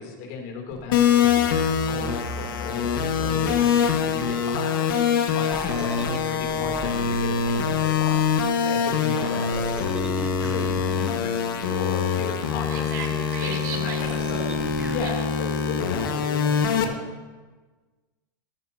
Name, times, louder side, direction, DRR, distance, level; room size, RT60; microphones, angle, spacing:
voice 1, 0.0-1.5 1.9-5.0 5.3-8.2 8.6-10.0 10.4-12.9 13.4-17.0, left 5 dB, 50° left, 1 dB, 3.0 m, -35 dB
sound 1, 0.7-4.4 5.5-8.6 9.5-15.1, right 2 dB, 10° right, 0.9 m, -39 dB
sound 2, 0.9-16.8, left 7 dB, 80° left, 1.5 m, -24 dB
voice 2, 12.7-14.6 15.0-15.2, right 6 dB, 55° right, 1 dB, 2.3 m, -37 dB
17.5 x 14.5 x 2.8 m, 1.3 s
supercardioid pair, 160°, 11 cm